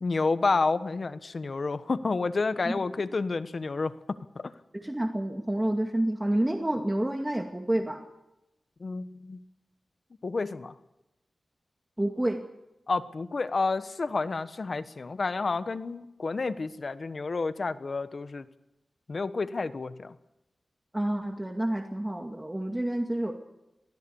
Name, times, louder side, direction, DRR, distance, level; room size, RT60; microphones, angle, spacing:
voice 1, 0.0-3.9 4.3-4.5 8.8-9.4 10.2-10.7 12.9-18.4 19.1-20.1, left 3 dB, 60° left, 12 dB, 1.3 m, -30 dB
voice 2, 4.7-8.0 12.0-12.4 20.9-23.3, right 1 dB, 20° right, 4 dB, 2.2 m, -29 dB
22.5 x 16.5 x 7.2 m, 0.92 s
cardioid pair, 50°, 0 cm